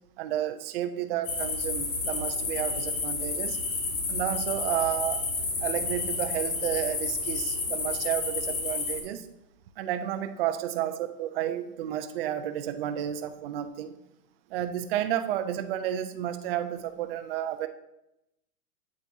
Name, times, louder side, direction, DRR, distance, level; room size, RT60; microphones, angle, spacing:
voice 1, 0.2-3.6 4.1-5.3 5.6-9.3 9.8-13.9 14.5-17.7, right 11 dB, 40° right, 8 dB, 0.5 m, -31 dB
sound 1, 1.2-9.0, left 3 dB, 65° left, 2.1 m, -30 dB
8.1 x 7.4 x 2.7 m, 0.85 s
hypercardioid pair, 145°, 45 cm